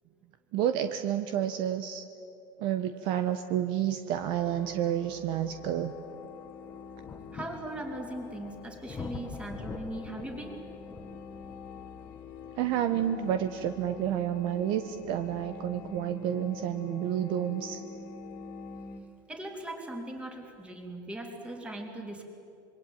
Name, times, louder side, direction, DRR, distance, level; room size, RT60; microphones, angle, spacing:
voice 1, 0.5-2.0 2.6-5.9 12.6-17.8, right 10 dB, 50° right, 9 dB, 1.1 m, -30 dB
sound 1, 4.1-19.0, left 4 dB, 65° left, 2.7 m, -46 dB
sound 2, 4.1-4.2 4.8-19.5 20.4-20.5, left 4 dB, 15° left, 1.6 m, -48 dB
voice 2, 7.3-10.6 19.3-22.2, right 1 dB, 10° right, 3 dB, 3.5 m, -39 dB
26.5 x 23.5 x 9.3 m, 2.6 s
supercardioid pair, 155°, 11 cm